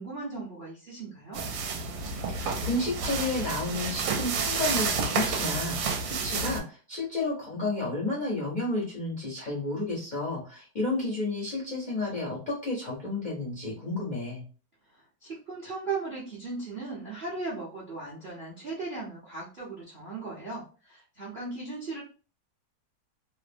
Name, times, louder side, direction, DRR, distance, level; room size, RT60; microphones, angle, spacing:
voice 1, 0.0-1.4 14.9-22.0, right 3 dB, 55° right, -5 dB, 0.5 m, -37 dB
sound 1, 1.3-6.6, right 4 dB, 75° right, 1.2 m, -30 dB
voice 2, 2.3-14.4, left 2 dB, 65° left, -4 dB, 0.4 m, -31 dB
3.1 x 2.1 x 2.5 m, 0.37 s
omnidirectional pair, 2.0 m